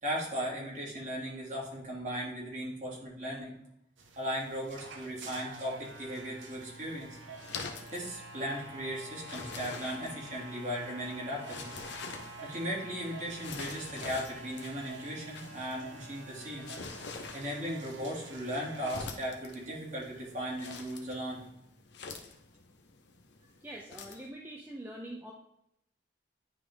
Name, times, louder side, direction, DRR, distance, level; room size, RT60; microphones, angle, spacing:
voice 1, 0.0-3.6 4.2-7.2 7.9-11.7 12.4-16.7 17.3-21.4, equal, 40° right, -4 dB, 2.1 m, -37 dB
sound 1, 4.0-21.5, right 2 dB, 80° right, 0.9 m, -48 dB
sound 2, 6.5-24.3, left 4 dB, 65° left, 0.8 m, -47 dB
voice 2, 23.6-25.3, right 1 dB, 10° right, -2 dB, 0.5 m, -44 dB
9.8 x 3.4 x 3.5 m, 0.82 s
head